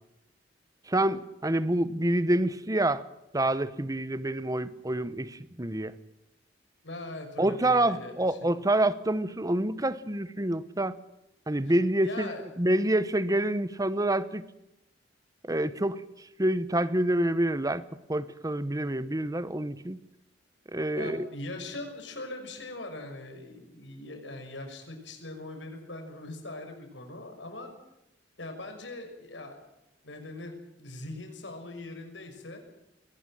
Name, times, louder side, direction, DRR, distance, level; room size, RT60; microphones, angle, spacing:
voice 1, 0.9-3.0 3.3-6.0 7.4-11.0 11.5-14.4 15.4-17.8 18.1-20.0 20.7-21.3, right 1 dB, 20° right, 15 dB, 1.1 m, -27 dB
voice 2, 6.8-8.4 12.0-12.4 20.9-27.7 28.4-29.6 30.0-32.6, left 2 dB, 80° left, 4 dB, 6.2 m, -41 dB
22.5 x 18.0 x 9.0 m, 0.89 s
head